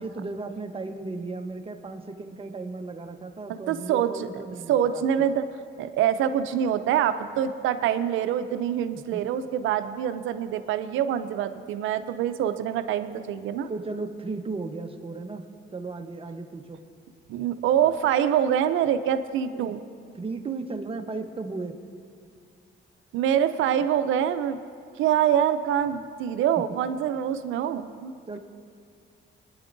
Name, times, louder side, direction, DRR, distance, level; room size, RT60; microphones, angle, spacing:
voice 1, 0.0-5.3 9.1-9.2 13.7-15.4 15.7-16.8 19.5-19.7 20.1-21.8 28.3-28.4, right 3 dB, 30° right, 5 dB, 1.0 m, -35 dB
voice 2, 3.5-4.3 4.7-5.4 5.8-13.7 17.3-19.8 23.1-24.6 25.0-28.1, right 9 dB, 85° right, 10 dB, 0.5 m, -25 dB
23.0 x 10.0 x 2.6 m, 2.3 s
cardioid pair, 90°, 20 cm